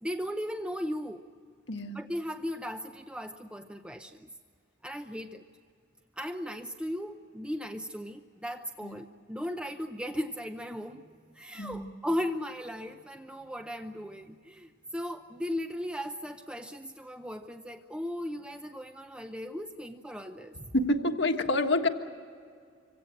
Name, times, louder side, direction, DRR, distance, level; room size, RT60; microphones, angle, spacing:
voice 1, 0.0-1.2 1.9-4.3 4.8-5.4 6.2-20.6, equal, 5° right, 6 dB, 0.6 m, -37 dB
voice 2, 1.7-2.0 8.8-8.9 11.6-11.9 20.7-21.9, left 2 dB, 70° left, 5 dB, 1.6 m, -27 dB
25.5 x 17.0 x 8.7 m, 2.2 s
head